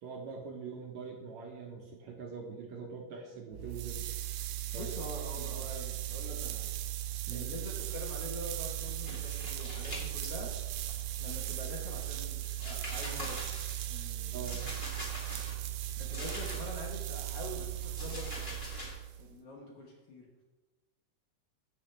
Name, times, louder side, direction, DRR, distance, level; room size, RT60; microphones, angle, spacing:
voice 1, 0.0-4.1 4.7-4.9 5.4-5.5 7.3-7.5 14.3-14.6, right 5 dB, 65° right, 0 dB, 2.1 m, -43 dB
sound 1, 3.5-19.3, right 15 dB, 90° right, 2.4 m, -38 dB
voice 2, 4.7-6.7 7.3-10.5 11.2-13.4 13.9-14.8 15.3-15.4 16.0-18.6 19.2-20.3, left 2 dB, 55° left, -2 dB, 1.9 m, -45 dB
sound 2, 8.3-11.4 11.8-16.9 17.2-18.9, left 1 dB, 15° left, 2.4 m, -45 dB
17.0 x 5.9 x 3.3 m, 1.2 s
omnidirectional pair, 3.9 m